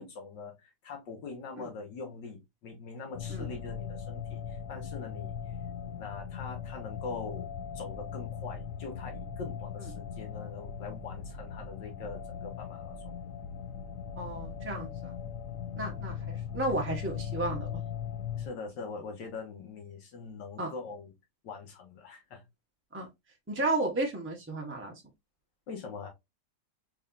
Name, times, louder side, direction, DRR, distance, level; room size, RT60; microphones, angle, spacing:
voice 1, 0.0-5.3 5.9-7.5 7.7-13.1 18.4-21.1 21.4-22.4 25.7-26.1, left 4 dB, 85° left, 1.9 m, -43 dB
sound 1, 3.1-18.5, left 7 dB, 65° left, 0.9 m, -39 dB
voice 2, 14.2-15.1 15.7-17.7 20.6-20.7 22.9-23.1 23.5-24.9, right 2 dB, 15° right, 0.4 m, -33 dB
4.0 x 3.7 x 2.4 m
omnidirectional pair, 1.9 m